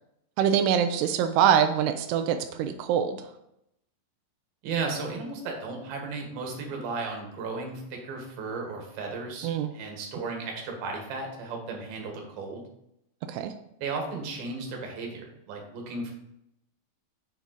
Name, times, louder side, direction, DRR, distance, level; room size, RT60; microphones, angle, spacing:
voice 1, 0.4-3.2 9.4-9.7 13.3-13.5, right 8 dB, 85° right, 7 dB, 2.3 m, -24 dB
voice 2, 4.6-12.6 13.8-16.1, right 4 dB, 60° right, 1 dB, 3.0 m, -35 dB
7.2 x 7.0 x 4.0 m, 0.79 s
omnidirectional pair, 5.3 m